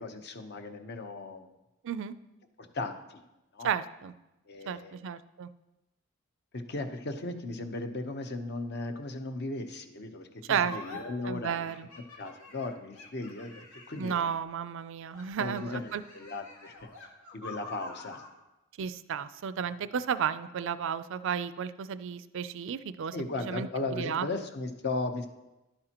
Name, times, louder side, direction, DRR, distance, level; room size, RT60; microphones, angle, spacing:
voice 1, 0.0-1.5 2.7-3.2 3.5-3.7 4.5-5.0 6.5-11.7 12.2-14.3 15.4-16.9 17.3-18.2 23.1-25.3, left 2 dB, 55° left, 6 dB, 0.9 m, -36 dB
voice 2, 1.8-2.1 3.6-4.1 4.7-5.5 10.5-11.0 11.2-11.9 14.0-16.0 18.8-24.3, right 7 dB, 65° right, 14 dB, 0.4 m, -33 dB
sound 1, 10.6-11.0 11.7-14.5 15.1-18.3, left 3 dB, 75° left, 1.7 m, -47 dB
11.5 x 8.7 x 3.0 m, 1.0 s
head